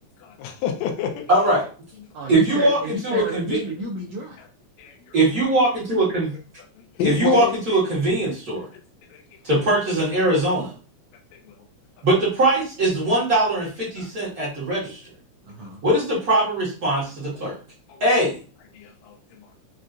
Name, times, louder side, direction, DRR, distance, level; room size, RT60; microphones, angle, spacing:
voice 1, 0.2-1.3 4.4-4.5 4.8-5.2 6.8-7.6 9.1-9.2 11.3-11.5 14.0-14.1 17.4-17.5 17.9-18.0 18.7-19.5, left 9 dB, 80° left, 1.7 m, -29 dB
voice 2, 1.3-1.7 2.3-3.6 5.1-6.3 7.0-8.7 9.4-10.7 12.0-15.0 15.8-17.6 18.0-18.3, right 1 dB, 55° right, 1.0 m, -21 dB
voice 3, 2.1-4.4 15.4-15.8, right 2 dB, 80° right, 1.4 m, -31 dB
5.3 x 2.4 x 2.5 m
omnidirectional pair, 3.6 m